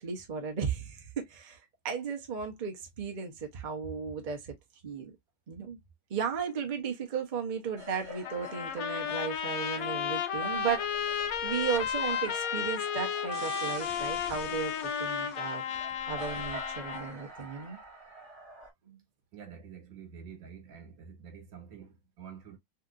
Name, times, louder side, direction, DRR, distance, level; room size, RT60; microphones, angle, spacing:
voice 1, 0.0-1.6 1.8-4.5 4.8-5.1 5.5-5.8 6.1-11.1 11.4-15.6 16.1-17.8 18.9-19.0, right 6 dB, 45° right, 0.6 m, -35 dB
sound 1, 7.8-18.7, right 1 dB, 15° right, 1.1 m, -47 dB
Trumpet, 8.2-17.2, left 7 dB, 75° left, 0.8 m, -33 dB
sound 2, 13.3-15.8, left 3 dB, 35° left, 1.0 m, -47 dB
voice 2, 19.3-22.6, right 7 dB, 75° right, 1.8 m, -48 dB
3.3 x 2.9 x 2.4 m
omnidirectional pair, 2.1 m